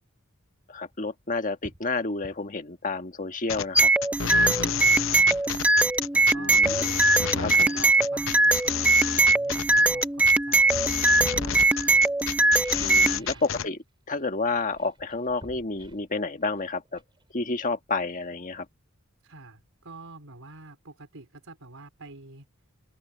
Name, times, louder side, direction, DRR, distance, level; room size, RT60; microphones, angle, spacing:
voice 1, 0.7-3.9 6.4-6.8 7.4-7.7 12.8-13.8 14.1-17.0 17.3-18.6, left 3 dB, 40° left, 1.4 m, -30 dB
sound 1, 0.9-1.0 1.6-1.9 2.2-2.4 4.3-4.4 4.8-6.5 7.6-7.7 8.2-9.6 10.2-11.0 12.3-13.6 13.9-14.2 14.5-18.1 18.4-18.5, right 1 dB, 25° right, 4.4 m, -50 dB
sound 2, 3.5-13.7, left 9 dB, 65° left, 0.7 m, -30 dB
sound 3, 3.7-13.2, right 3 dB, 5° right, 0.5 m, -21 dB
voice 2, 4.3-5.6 6.1-6.6 7.2-10.7 11.2-12.2 12.9-13.4 19.2-22.5, right 3 dB, 80° right, 4.0 m, -47 dB
head